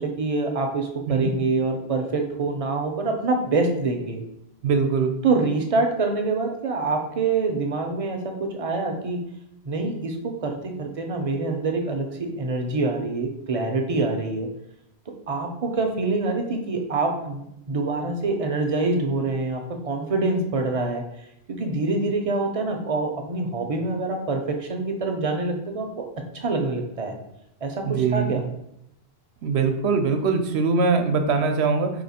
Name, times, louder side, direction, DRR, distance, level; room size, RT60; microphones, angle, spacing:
voice 1, 0.0-4.2 5.2-9.2 9.6-14.5 15.3-21.0 21.5-27.1 27.6-28.4, right 3 dB, 40° right, 3 dB, 0.6 m, -25 dB
voice 2, 4.6-5.2 27.9-28.4 29.4-31.9, right 4 dB, 85° right, 6 dB, 0.9 m, -22 dB
4.3 x 2.9 x 4.1 m, 0.79 s
omnidirectional pair, 1.1 m